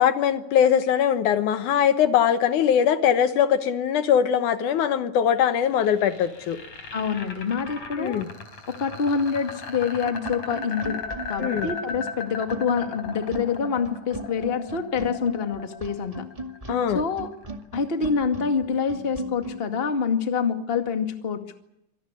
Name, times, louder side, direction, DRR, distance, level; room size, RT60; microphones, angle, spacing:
voice 1, 0.0-6.6 8.0-8.3 11.4-11.7 16.7-17.0, left 9 dB, 75° left, 10 dB, 2.6 m, -21 dB
sound 1, 5.4-17.4, left 4 dB, 55° left, 5.3 m, -37 dB
voice 2, 6.9-8.2 8.7-11.0 11.3-16.3 16.9-17.3 17.7-21.6, left 6 dB, 20° left, 6 dB, 1.9 m, -26 dB
sound 2, 10.0-19.6, right 2 dB, 15° right, 1.6 m, -38 dB
26.0 x 18.5 x 8.4 m, 0.82 s
omnidirectional pair, 3.6 m